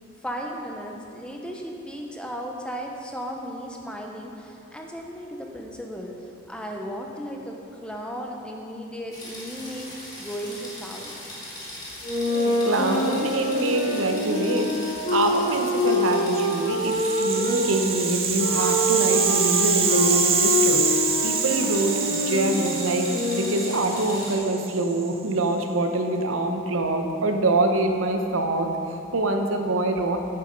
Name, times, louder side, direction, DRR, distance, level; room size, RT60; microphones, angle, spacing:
voice 1, 0.2-6.1 6.5-7.5 7.8-9.9 10.2-11.1, equal, 5° left, 0 dB, 0.8 m, -35 dB
sound 1, 9.1-24.4, left 1 dB, 20° left, 2.1 m, -39 dB
sound 2, 12.0-17.6 18.3-23.9, left 1 dB, 40° left, 2.0 m, -25 dB
voice 2, 12.3-23.1 23.3-28.7 29.1-30.2, right 2 dB, 75° right, 4 dB, 0.9 m, -25 dB
Rattle (instrument), 16.9-25.1, right 6 dB, 30° right, 0.7 m, -26 dB
9.2 x 8.2 x 5.3 m, 2.7 s
head